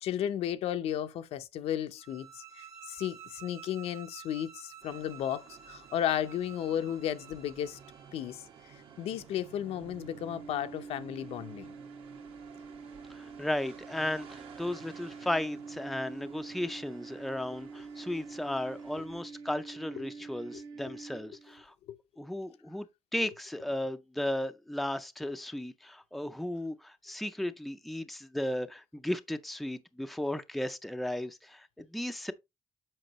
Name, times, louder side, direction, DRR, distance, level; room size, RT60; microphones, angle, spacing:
voice 1, 0.0-7.8 8.1-8.4 9.0-11.7 20.0-20.1 20.5-20.6 20.9-21.0 21.9-22.0, left 10 dB, 80° left, 0.7 m, -34 dB
sound 1, 2.0-8.1, right 8 dB, 85° right, 1.6 m, -51 dB
sound 2, 4.8-19.1, right 7 dB, 65° right, 1.6 m, -54 dB
sound 3, 7.7-21.6, right 4 dB, 40° right, 0.6 m, -47 dB
voice 2, 13.1-21.7 22.2-22.9 23.1-32.3, left 1 dB, ahead, 0.4 m, -35 dB
7.7 x 5.3 x 3.0 m
cardioid pair, 150°, 10 cm